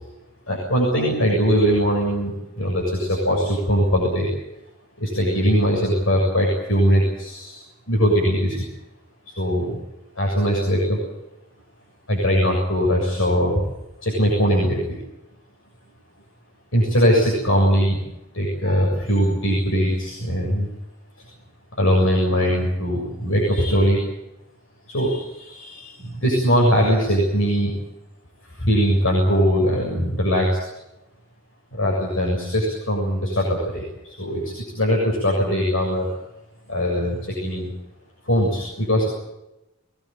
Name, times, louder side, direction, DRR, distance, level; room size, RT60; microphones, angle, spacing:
voice 1, 0.5-4.3 5.0-7.6 7.9-8.6 9.3-9.8 10.2-11.0 12.1-13.6 14.0-15.0 16.7-18.0 18.3-20.7 21.8-24.0 24.9-27.7 28.6-30.6 31.7-34.4 34.7-36.1 36.7-37.7 38.3-39.1, equal, 80° left, -2 dB, 7.1 m, -21 dB
23.0 x 19.0 x 9.2 m, 0.93 s
head